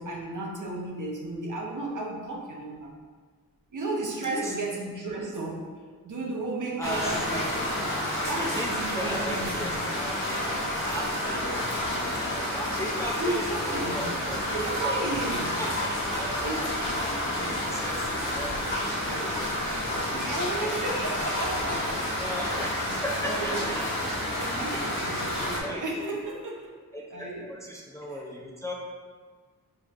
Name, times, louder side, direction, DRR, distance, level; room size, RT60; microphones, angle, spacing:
voice 1, 0.0-2.9 3.7-5.7 6.0-7.7 8.3-9.8 13.2-14.1 14.5-15.6 16.4-16.7 19.1-19.5 20.1-22.1 22.5-22.6 23.2-23.8 24.3-26.7 27.1-27.4 28.1-28.2, right 2 dB, 60° right, -1 dB, 0.8 m, -34 dB
sound 1, 6.8-25.6, left 1 dB, 35° left, 1.3 m, -30 dB
voice 2, 6.8-7.5 8.3-10.5 10.8-15.1 15.4-16.5 17.1-18.5 19.2-19.5 20.6-20.7 21.1-21.3 22.2-24.1 24.7-24.9 25.3-26.2 26.9-28.7, equal, 10° left, -2 dB, 0.4 m, -37 dB
4.4 x 4.2 x 2.4 m, 1.5 s
wide cardioid pair, 90°, 35 cm